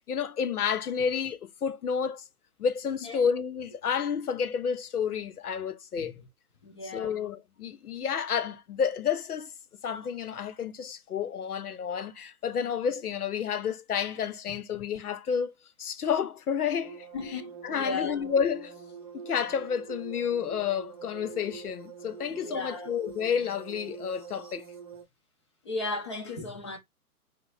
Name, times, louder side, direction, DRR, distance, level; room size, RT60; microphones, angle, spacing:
voice 1, 0.1-2.2 2.6-6.2 6.9-9.5 9.8-15.5 15.8-17.1 17.6-18.8 19.1-24.7, left 7 dB, 80° left, 0.7 m, -30 dB
voice 2, 6.6-7.2 12.6-12.7 14.5-14.6 17.1-18.3 22.4-22.9 25.6-26.8, left 3 dB, 20° left, 0.5 m, -36 dB
sound 1, 16.8-25.0, right 7 dB, 25° right, 0.6 m, -45 dB
5.8 x 2.1 x 2.3 m
figure-of-eight pair, 140°, 45 cm